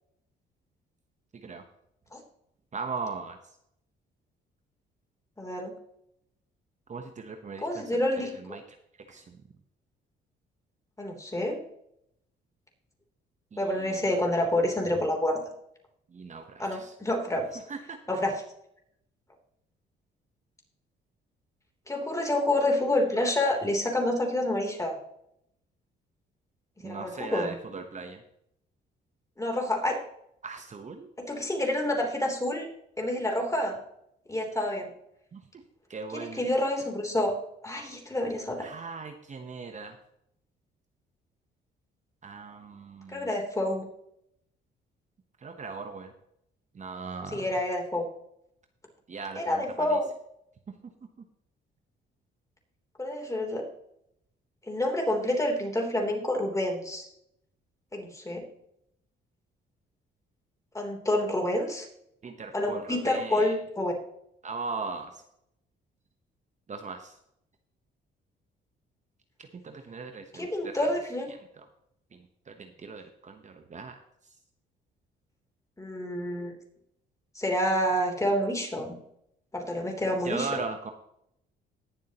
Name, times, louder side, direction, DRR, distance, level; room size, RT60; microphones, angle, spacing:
voice 1, 1.3-1.6 2.7-3.4 6.9-7.9 8.2-8.6 9.1-9.4 13.5-14.1 16.1-16.9 17.7-18.0 26.8-28.2 30.4-31.1 35.3-35.6 35.9-36.4 38.6-40.0 42.2-43.3 45.4-46.1 46.7-47.4 49.1-50.0 50.7-50.8 62.2-63.5 64.4-65.2 66.7-67.2 69.4-70.9 71.5-71.7 72.1-72.2 72.5-74.0 80.2-80.9, right 4 dB, 35° right, 6 dB, 1.0 m, -39 dB
voice 2, 5.4-5.7 7.6-8.3 11.0-11.6 13.6-15.4 16.6-17.6 18.1-18.4 21.9-25.0 26.8-27.6 29.4-30.0 31.2-32.7 33.0-33.8 34.3-34.9 36.1-37.3 37.6-38.7 43.1-43.8 47.3-48.0 49.3-50.1 53.0-53.6 54.7-57.1 57.9-58.4 60.7-61.9 62.5-63.9 70.3-71.3 75.8-76.5 77.3-79.0 79.5-80.5, left 1 dB, 15° left, 2 dB, 3.2 m, -28 dB
19.0 x 7.3 x 3.0 m, 0.76 s
cardioid pair, 90°, 20 cm